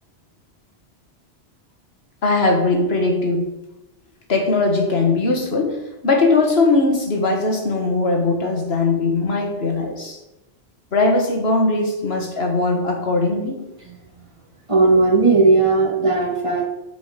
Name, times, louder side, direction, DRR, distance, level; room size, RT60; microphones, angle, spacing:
voice 1, 2.2-3.5 4.3-10.2 10.9-13.6, left 3 dB, 75° left, 2 dB, 1.9 m, -20 dB
voice 2, 13.9-14.2 14.7-16.6, right 3 dB, 30° right, -3 dB, 2.1 m, -17 dB
13.0 x 5.2 x 5.2 m, 0.99 s
omnidirectional pair, 1.1 m